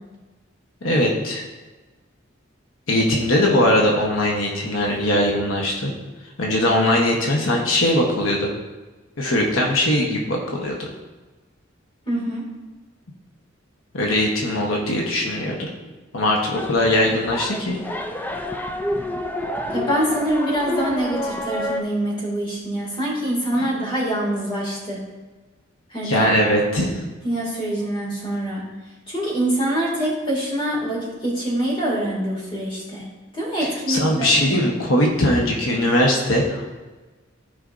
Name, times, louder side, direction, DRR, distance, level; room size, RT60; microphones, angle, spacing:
voice 1, 0.8-1.4 2.9-5.9 6.4-8.5 9.2-10.9 13.9-15.7 16.1-17.8 23.6-23.7 26.0-26.9 33.9-36.6, left 1 dB, 85° left, -1 dB, 1.1 m, -20 dB
voice 2, 12.1-12.5 19.7-25.0 25.9-26.4 27.2-28.6 29.1-33.0 33.3-34.6, right 1 dB, 25° left, -4 dB, 2.2 m, -25 dB
sound 1, 16.5-21.8, left 1 dB, 10° left, 0.3 m, -29 dB
13.0 x 5.0 x 2.6 m, 1.2 s
head